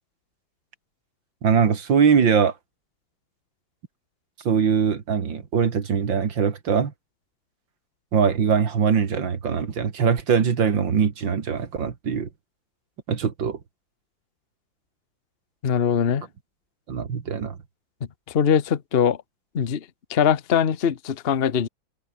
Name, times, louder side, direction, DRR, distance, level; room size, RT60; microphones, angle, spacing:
voice 1, 1.4-2.5 4.4-6.9 8.1-12.3 13.1-13.6 16.9-17.6, right 6 dB, 65° right, 2.8 m, -22 dB
voice 2, 15.6-16.3 18.3-19.2 19.5-19.8 20.1-21.7, left 7 dB, 40° left, 1.0 m, -21 dB
omnidirectional pair, 2.2 m